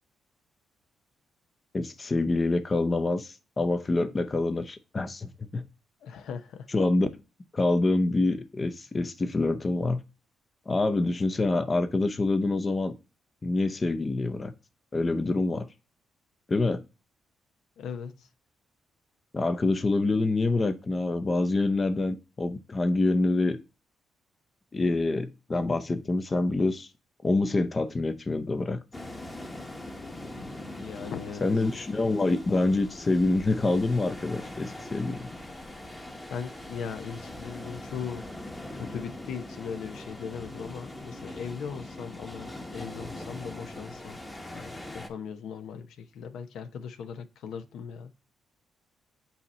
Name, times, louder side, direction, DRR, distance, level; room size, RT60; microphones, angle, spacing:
voice 1, 1.7-5.6 6.7-7.1 7.5-10.0 10.7-12.9 13.4-14.5 14.9-15.7 16.5-16.8 19.3-23.6 24.7-26.9 27.2-28.8 31.4-35.3, left 2 dB, 30° left, 0.7 m, -26 dB
voice 2, 6.0-6.7 17.8-18.3 30.7-31.5 36.3-38.2 38.7-44.2 44.5-48.1, left 6 dB, 80° left, 0.7 m, -39 dB
sound 1, 28.9-45.1, left 1 dB, 15° left, 1.2 m, -42 dB
8.1 x 2.8 x 4.2 m
cardioid pair, 80°, 0 cm